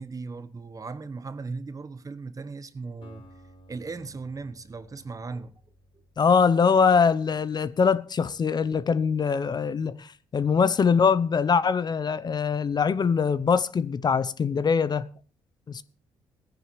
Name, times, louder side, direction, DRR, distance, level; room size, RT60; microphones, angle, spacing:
voice 1, 0.0-3.3 3.7-5.6, right 4 dB, 30° right, 1.0 m, -37 dB
Acoustic guitar, 3.0-7.1, equal, 55° left, 5.1 m, -55 dB
voice 2, 6.2-15.1 15.7-15.8, left 6 dB, 40° left, 0.7 m, -23 dB
16.5 x 10.0 x 3.2 m
supercardioid pair, 60°, 11 cm